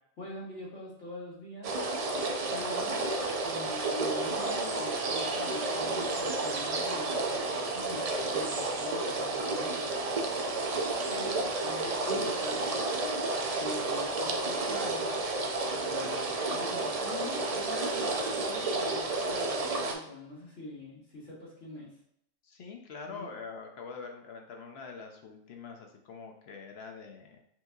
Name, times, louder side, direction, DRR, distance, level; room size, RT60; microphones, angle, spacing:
voice 1, 0.2-1.7 2.5-2.9 3.4-9.8 11.1-12.6 13.6-15.1 15.7-21.9 23.1-23.3, left 1 dB, 85° left, -7 dB, 1.9 m, -44 dB
sound 1, 1.6-19.9, right 2 dB, 70° right, 0.3 m, -31 dB
voice 2, 10.3-10.7 22.4-27.4, left 5 dB, 65° left, 3 dB, 0.8 m, -45 dB
5.7 x 2.8 x 2.3 m, 0.72 s
omnidirectional pair, 1.3 m